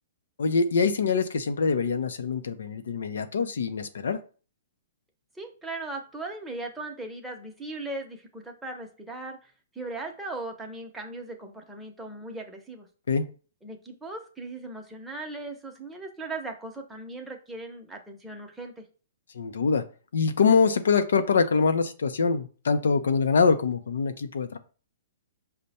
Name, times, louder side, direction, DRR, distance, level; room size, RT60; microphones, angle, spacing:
voice 1, 0.4-4.2 13.1-13.3 19.3-19.8 20.1-24.6, left 5 dB, 80° left, 8 dB, 0.6 m, -24 dB
voice 2, 5.3-12.9 13.6-18.8, right 2 dB, 5° right, 2 dB, 0.9 m, -38 dB
5.3 x 2.2 x 4.2 m, 0.37 s
hypercardioid pair, 130°, 0 cm